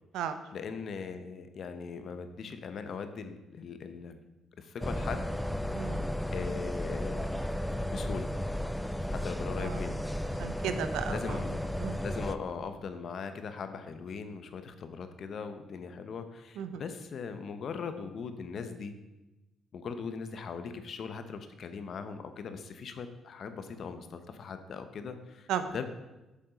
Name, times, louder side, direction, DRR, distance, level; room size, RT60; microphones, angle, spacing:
voice 1, 0.5-4.2 4.6-5.3 6.3-7.3 7.6-8.3 9.0-10.0 11.1-11.6 12.0-19.0 19.7-25.8, left 5 dB, 60° left, 9 dB, 0.9 m, -40 dB
sound 1, 4.8-12.4, equal, 5° left, 0.5 m, -34 dB
voice 2, 5.7-6.1 9.6-9.8 10.4-11.4 11.8-12.0 16.6-16.8 25.5-25.7, right 8 dB, 90° right, 10 dB, 0.7 m, -34 dB
7.3 x 7.1 x 5.1 m, 1.0 s
cardioid pair, 90°, 0 cm